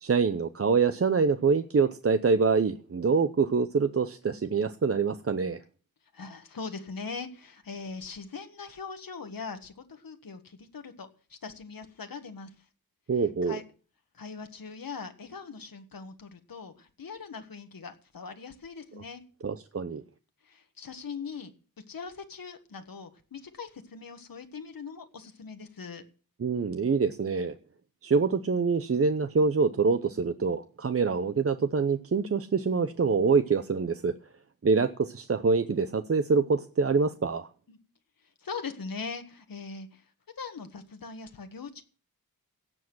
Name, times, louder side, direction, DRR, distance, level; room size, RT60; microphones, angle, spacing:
voice 1, 0.0-5.6 13.1-13.6 19.4-20.0 26.4-27.5 28.0-34.1 34.6-37.5, right 4 dB, 40° right, 10 dB, 0.7 m, -25 dB
voice 2, 6.1-12.5 13.4-13.6 14.1-19.2 20.4-21.5 21.9-26.0 37.7-37.8 38.4-40.0 40.4-41.8, left 5 dB, 70° left, 6 dB, 1.6 m, -41 dB
17.0 x 7.4 x 6.1 m, 0.40 s
wide cardioid pair, 115°, 35 cm